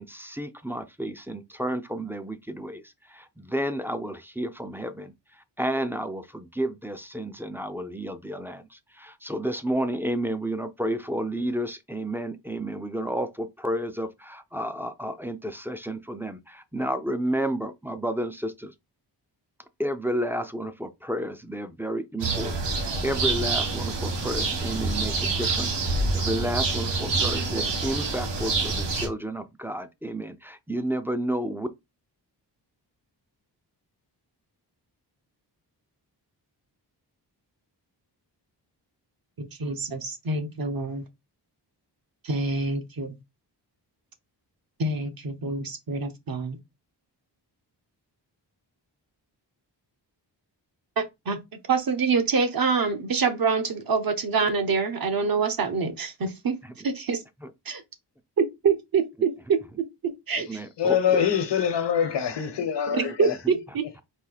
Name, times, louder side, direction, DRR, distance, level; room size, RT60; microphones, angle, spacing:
voice 1, 0.0-2.8 3.1-5.1 5.6-18.7 19.8-31.7 60.5-61.2, right 1 dB, 5° right, 0.4 m, -31 dB
sound 1, 22.2-29.1, right 3 dB, 85° right, 1.4 m, -27 dB
voice 2, 39.4-41.0 42.2-43.2 44.8-46.6 51.0-51.4 51.7-56.6 56.8-57.2 57.6-57.8 58.4-59.3 59.8-60.6 62.9-64.0, right 4 dB, 55° right, 0.9 m, -26 dB
voice 3, 60.8-63.4, left 8 dB, 80° left, 1.0 m, -24 dB
4.3 x 2.7 x 3.9 m
wide cardioid pair, 130°, 42 cm